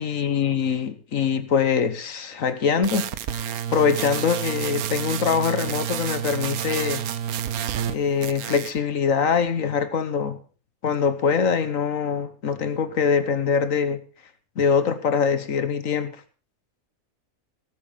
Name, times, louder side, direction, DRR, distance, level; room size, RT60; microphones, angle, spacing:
voice 1, 0.0-7.0 7.9-10.4 10.8-14.0 14.6-16.2, left 6 dB, 65° left, 1.5 m, -23 dB
sound 1, 2.8-8.0 8.2-8.8, right 9 dB, 85° right, 1.3 m, -29 dB
19.0 x 7.9 x 5.3 m
omnidirectional pair, 1.5 m